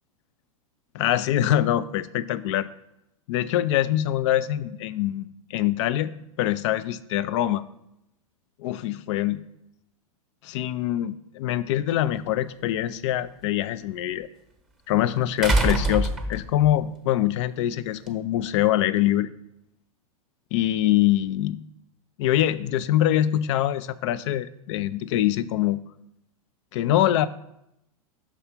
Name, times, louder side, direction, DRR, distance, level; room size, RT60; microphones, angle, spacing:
voice 1, 0.9-2.7 3.3-5.3 5.5-6.1 6.4-7.6 8.6-9.4 10.4-14.3 14.9-19.3 20.5-21.6 22.2-25.8 26.7-27.3, left 13 dB, 55° left, 15 dB, 0.4 m, -24 dB
sound 1, 12.1-12.2 15.4-16.7 18.1-18.2, right 2 dB, 5° right, 0.9 m, -23 dB
6.0 x 3.3 x 5.8 m, 0.82 s
hypercardioid pair, 100°, 19 cm